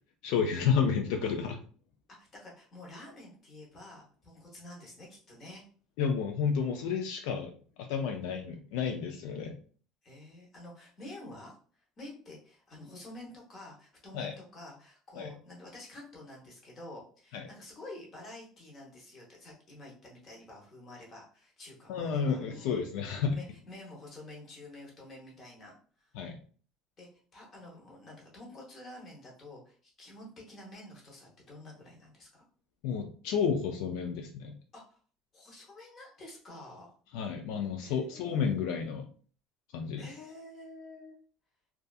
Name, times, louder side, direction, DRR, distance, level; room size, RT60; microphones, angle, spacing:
voice 1, 0.2-1.6 6.0-7.5 7.8-9.5 14.1-14.3 15.2-15.3 17.3-17.5 21.9-23.4 26.1-26.4 32.8-34.5 37.1-39.1 39.7-40.0, left 6 dB, 70° left, 4 dB, 0.3 m, -31 dB
voice 2, 2.2-5.6 10.0-22.9 23.3-26.1 27.0-32.4 34.7-35.0 35.3-37.0 37.8-38.9 40.0-41.2, left 1 dB, 25° left, -3 dB, 0.8 m, -49 dB
2.6 x 2.3 x 2.3 m, 0.43 s
cardioid pair, 175°, 0 cm